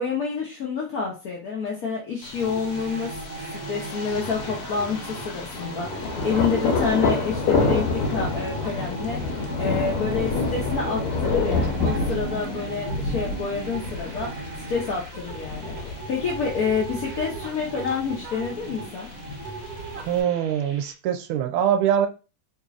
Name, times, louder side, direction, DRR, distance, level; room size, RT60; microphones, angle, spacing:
voice 1, 0.0-3.2 3.5-19.1, left 5 dB, 70° left, 0.9 m, -28 dB
Thunder, 2.2-20.2, left 3 dB, 90° left, 1.6 m, -29 dB
sound 1, 2.3-20.9, right 3 dB, 55° right, 1.1 m, -38 dB
voice 2, 20.1-22.1, right 9 dB, 80° right, 1.4 m, -23 dB
4.0 x 2.9 x 2.4 m
omnidirectional pair, 2.4 m